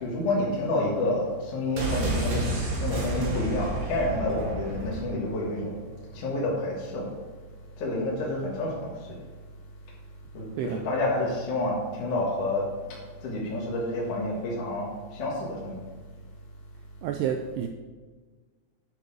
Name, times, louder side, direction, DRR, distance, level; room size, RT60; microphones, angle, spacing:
voice 1, 0.0-2.5 2.8-5.8 6.1-7.1 7.8-8.9 10.3-12.7 13.2-15.8, left 1 dB, 55° left, -5 dB, 2.6 m, -29 dB
sound 1, 1.8-5.5 5.8-5.9, right 1 dB, 50° right, 1.9 m, -30 dB
voice 2, 17.0-17.7, right 8 dB, 90° right, 5 dB, 2.3 m, -29 dB
8.9 x 7.9 x 4.8 m, 1.4 s
omnidirectional pair, 5.3 m